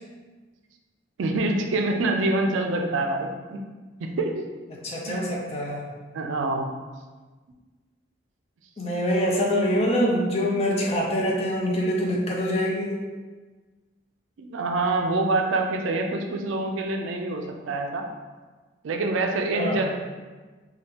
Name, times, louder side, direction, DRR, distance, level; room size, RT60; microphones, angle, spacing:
voice 1, 1.2-3.6 4.0-4.5 5.1-5.4 6.1-6.7 14.4-18.1 18.8-19.9, right 2 dB, 75° right, 3 dB, 0.4 m, -26 dB
voice 2, 4.7-5.8 8.8-13.0 19.5-19.9, equal, 30° left, -1 dB, 0.4 m, -25 dB
3.3 x 2.3 x 2.8 m, 1.3 s
head